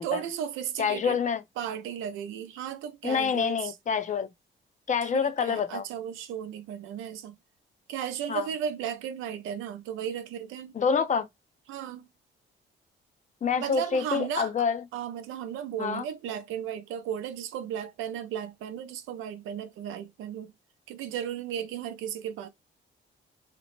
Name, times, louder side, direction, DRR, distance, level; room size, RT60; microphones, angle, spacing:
voice 1, 0.0-1.2 1.6-3.7 5.0-7.3 7.9-10.8 11.7-12.1 13.6-14.5 14.9-20.5 20.9-22.5, right 9 dB, 90° right, 0.5 m, -35 dB
voice 2, 0.8-1.4 3.0-4.3 4.9-5.8 8.3-8.5 10.7-11.3 13.4-14.8 15.8-16.0, left 6 dB, 40° left, 0.5 m, -27 dB
2.9 x 2.1 x 2.9 m
cardioid pair, 90°, 20 cm